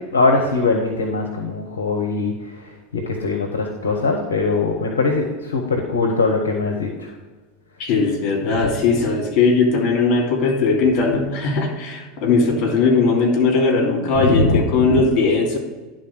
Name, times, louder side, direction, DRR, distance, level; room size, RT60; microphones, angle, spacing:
voice 1, 0.1-2.3 2.9-7.1 14.2-14.6, left 3 dB, 85° left, 3 dB, 0.9 m, -21 dB
voice 2, 7.8-15.6, left 4 dB, 50° left, 1 dB, 2.8 m, -18 dB
11.0 x 3.9 x 6.3 m, 1.2 s
hypercardioid pair, 85°, 0 cm